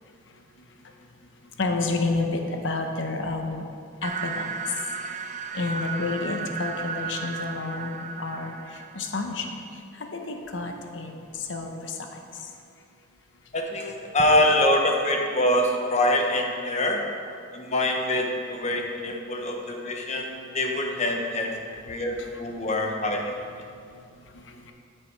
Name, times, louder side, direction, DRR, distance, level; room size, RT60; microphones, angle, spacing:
voice 1, 1.6-3.7 4.0-12.5 21.9-22.3 22.6-22.7 23.7-24.7, left 3 dB, 70° left, 4 dB, 1.0 m, -31 dB
sound 1, 4.0-9.1, right 5 dB, 40° right, 0.5 m, -34 dB
voice 2, 13.5-17.0 17.5-21.5 21.8-23.3 23.6-23.7, left 1 dB, 35° left, 2 dB, 1.1 m, -25 dB
12.5 x 6.9 x 4.7 m, 2.4 s
head